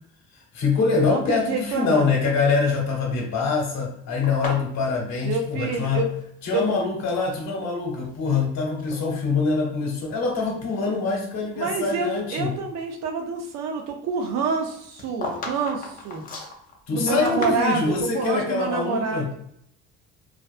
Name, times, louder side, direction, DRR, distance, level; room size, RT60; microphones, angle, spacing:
voice 1, 0.3-6.0 6.4-12.5 16.9-19.3, left 4 dB, 60° left, 0 dB, 0.9 m, -24 dB
voice 2, 1.1-2.1 5.2-6.1 6.5-6.6 11.6-16.2 16.9-19.3, right 5 dB, 60° right, 4 dB, 0.6 m, -27 dB
sound 1, 4.2-6.2 6.5-7.3 7.9-8.5 8.8-9.0 9.7-9.8 10.3-11.8 12.2-12.3 14.6-18.0, left 3 dB, 30° left, 0.5 m, -36 dB
2.5 x 2.3 x 2.4 m, 0.70 s
cardioid pair, 155°, 30 cm